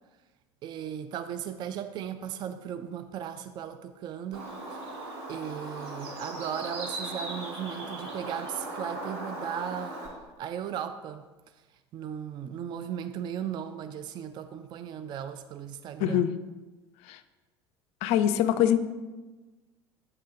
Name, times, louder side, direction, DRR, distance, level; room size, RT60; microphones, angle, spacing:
voice 1, 0.6-4.8 5.3-10.0 10.4-11.3 11.9-16.2, right 9 dB, 30° right, 10 dB, 0.3 m, -36 dB
Bird, 4.3-10.1, right 2 dB, 55° right, 1.5 m, -38 dB
voice 2, 16.0-16.3 17.1-17.2 18.0-18.8, left 10 dB, 50° left, 12 dB, 0.4 m, -23 dB
7.7 x 3.3 x 4.9 m, 1.2 s
figure-of-eight pair, 70°, 14 cm